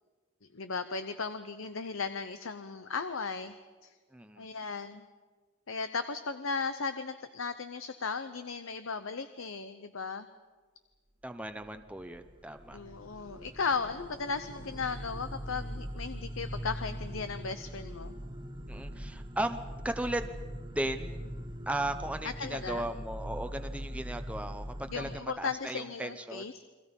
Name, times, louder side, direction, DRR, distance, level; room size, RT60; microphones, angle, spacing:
voice 1, 0.4-3.6 3.8-3.9 4.4-5.0 5.7-10.3 12.7-18.2 22.2-22.9 24.9-26.6, left 5 dB, 70° left, 10 dB, 0.8 m, -36 dB
voice 2, 4.1-4.5 11.2-12.8 18.7-20.3 20.7-21.3 21.7-26.4, right 1 dB, 5° right, 7 dB, 0.8 m, -36 dB
sound 1, 11.6-25.2, equal, 20° right, 1.3 m, -42 dB
29.5 x 23.0 x 5.4 m, 1.4 s
head